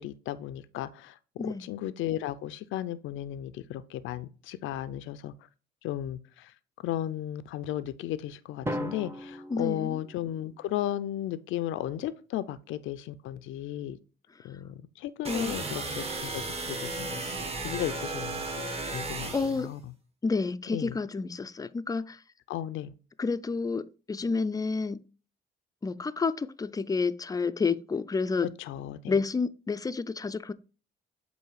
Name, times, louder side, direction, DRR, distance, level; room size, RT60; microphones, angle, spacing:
voice 1, 0.0-5.3 5.8-6.5 6.8-14.0 14.4-17.2 17.6-18.4 18.9-19.3 19.6-19.8 20.7-21.0 22.5-22.9 28.4-29.2, left 12 dB, 80° left, 0.4 m, -35 dB
Drum, 8.7-10.7, equal, 10° right, 0.8 m, -37 dB
voice 2, 9.5-10.0 15.3-15.6 19.3-19.7 20.2-22.2 23.2-25.0 25.8-28.5 29.1-30.5, left 4 dB, 20° left, 0.4 m, -30 dB
sound 1, 15.2-19.7, right 3 dB, 30° right, 1.2 m, -35 dB
7.8 x 2.7 x 4.7 m
cardioid pair, 90°, 20 cm